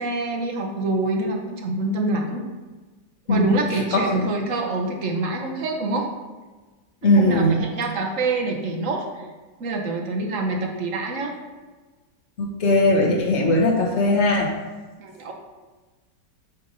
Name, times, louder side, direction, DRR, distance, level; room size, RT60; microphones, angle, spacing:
voice 1, 0.0-2.4 3.3-6.1 7.2-9.2 9.6-11.3 15.0-15.3, right 2 dB, 50° right, 2 dB, 1.1 m, -26 dB
voice 2, 7.0-7.6 12.4-14.5, left 1 dB, 40° left, -1 dB, 1.3 m, -19 dB
8.8 x 3.5 x 5.3 m, 1.3 s
omnidirectional pair, 2.1 m